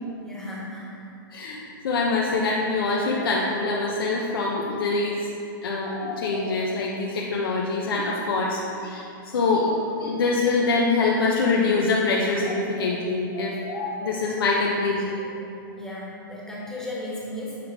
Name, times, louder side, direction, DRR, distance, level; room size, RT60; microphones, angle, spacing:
voice 1, 0.2-1.0 15.7-17.6, left 1 dB, 5° left, -6 dB, 1.3 m, -35 dB
voice 2, 1.3-5.2 5.6-9.0 9.3-15.2, left 3 dB, 80° left, -3 dB, 0.9 m, -24 dB
7.5 x 3.7 x 4.8 m, 2.6 s
hypercardioid pair, 145°, 12 cm